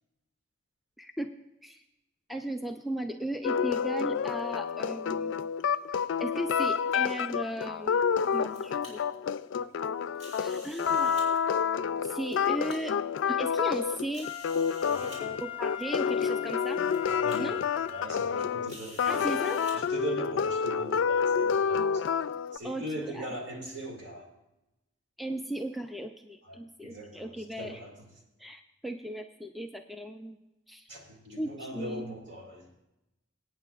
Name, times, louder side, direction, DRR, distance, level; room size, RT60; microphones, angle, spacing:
voice 1, 1.0-1.3 1.6-1.8 2.3-5.5 5.9-8.0 8.3-9.0 10.4-11.1 12.0-12.9 13.3-14.3 15.4-16.8 17.4-17.6 19.1-19.6 22.6-23.4 25.2-27.8 28.4-30.4 30.7-30.9 31.4-32.1, right 1 dB, ahead, 5 dB, 0.4 m, -36 dB
sound 1, 3.4-22.6, left 6 dB, 75° left, 0.3 m, -29 dB
sound 2, 8.0-8.9 10.1-11.3 12.0-12.8 13.4-13.5 14.1-15.2 16.1-16.2 16.6-17.0 17.3-17.4 18.7-19.7, equal, 35° right, 4.3 m, -49 dB
Wind instrument woodwind instrument, 14.2-18.5 19.0-19.1, left 13 dB, 30° left, 0.8 m, -40 dB
voice 2, 14.8-15.4 16.8-17.6 17.9-19.2 19.7-22.0 22.5-24.2 26.8-27.9 30.9-32.7, right 1 dB, 65° right, 1 dB, 2.1 m, -40 dB
24.0 x 9.0 x 2.4 m, 0.95 s
head